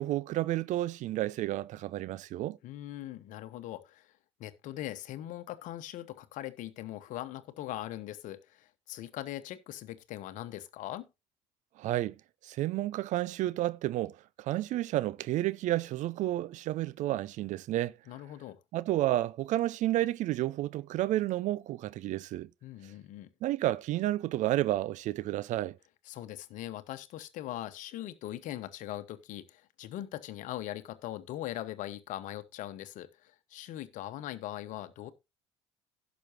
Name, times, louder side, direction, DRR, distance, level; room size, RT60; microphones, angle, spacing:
voice 1, 0.0-2.6 11.8-12.1 12.4-17.9 18.7-22.5 23.4-25.8, right 15 dB, 55° right, 0.5 m, -31 dB
voice 2, 2.6-4.1 4.4-11.1 18.1-18.6 22.6-23.3 26.1-35.1, left 13 dB, 60° left, 1.1 m, -41 dB
16.5 x 6.2 x 2.9 m
hypercardioid pair, 55°, 15 cm